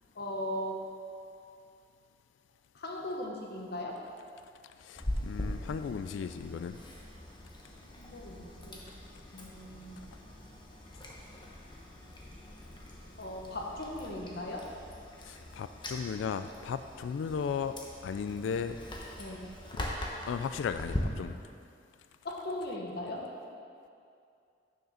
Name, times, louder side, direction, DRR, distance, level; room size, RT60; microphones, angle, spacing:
voice 1, 0.2-0.8 2.7-4.0 7.9-8.8 9.3-10.0 13.2-14.6 19.2-19.5 22.2-23.2, left 1 dB, 60° left, 0 dB, 1.1 m, -38 dB
voice 2, 4.8-6.8 15.2-17.8 18.0-18.8 19.8-21.4, left 6 dB, 85° left, 10 dB, 0.3 m, -36 dB
Chewing mastication, 5.0-21.0, left 1 dB, 25° left, 1.0 m, -42 dB
6.7 x 6.5 x 5.6 m, 2.5 s
head